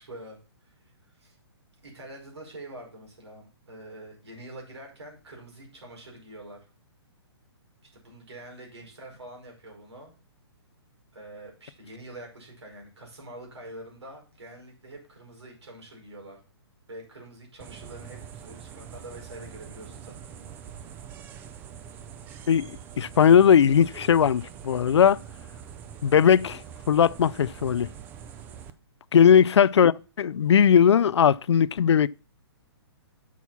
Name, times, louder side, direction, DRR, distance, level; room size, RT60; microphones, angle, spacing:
voice 1, 0.0-1.4 1.8-6.6 7.9-10.1 11.1-16.4 16.9-21.1 29.2-29.4, right 1 dB, 85° right, 5.4 m, -45 dB
sound 1, 17.6-28.7, right 8 dB, 15° right, 0.4 m, -44 dB
voice 2, 22.5-25.2 26.0-26.6 26.9-27.9 29.1-32.1, left 8 dB, 90° left, 0.4 m, -19 dB
7.0 x 6.2 x 5.7 m
hypercardioid pair, 155°, 14 cm